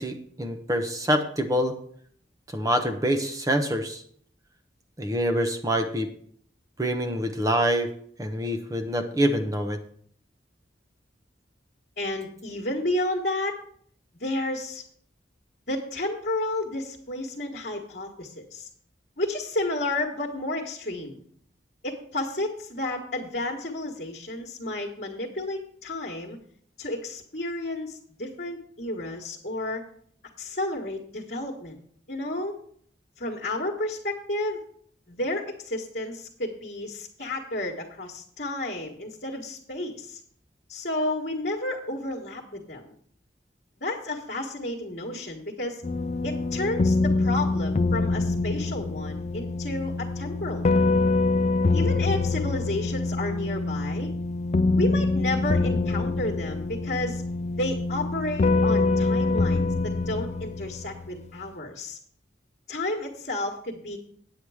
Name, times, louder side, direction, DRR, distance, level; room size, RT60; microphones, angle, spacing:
voice 1, 0.0-1.7 2.5-4.0 5.0-6.1 6.8-7.9 8.2-9.8, equal, 20° right, 7 dB, 0.8 m, -25 dB
voice 2, 12.0-13.6 14.2-14.8 15.7-18.7 19.2-21.2 21.8-26.4 26.8-29.8 30.4-31.8 32.1-32.5 33.2-34.6 35.1-40.2 40.7-42.9 43.8-45.8 46.2-50.9 51.7-54.1 54.8-57.2 57.6-62.0 62.7-64.0, left 1 dB, 50° left, -3 dB, 1.4 m, -31 dB
sound 1, 45.8-61.3, left 3 dB, 35° left, 0.3 m, -25 dB
9.0 x 8.3 x 4.8 m, 0.62 s
head